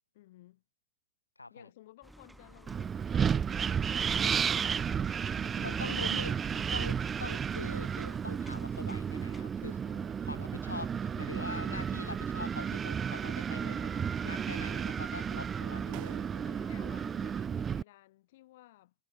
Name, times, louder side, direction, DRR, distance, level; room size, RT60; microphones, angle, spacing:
voice 1, 0.1-0.6 1.5-4.6 5.4-6.8 9.8-10.4 11.0-11.7 13.9-14.6 15.4-16.0 16.4-18.9, left 17 dB, 55° left, 6.2 m, -57 dB
voice 2, 1.4-1.7 5.6-6.4 6.7-9.8 10.2-13.9 14.2-16.7, left 2 dB, 80° left, 3.5 m, -43 dB
sound 1, 2.0-9.4, right 1 dB, 5° right, 2.2 m, -53 dB
Wind, 2.7-17.8, right 7 dB, 20° right, 1.2 m, -33 dB
sound 2, 15.9-16.8, right 32 dB, 45° right, 3.6 m, -54 dB
figure-of-eight pair, 90°, 0 cm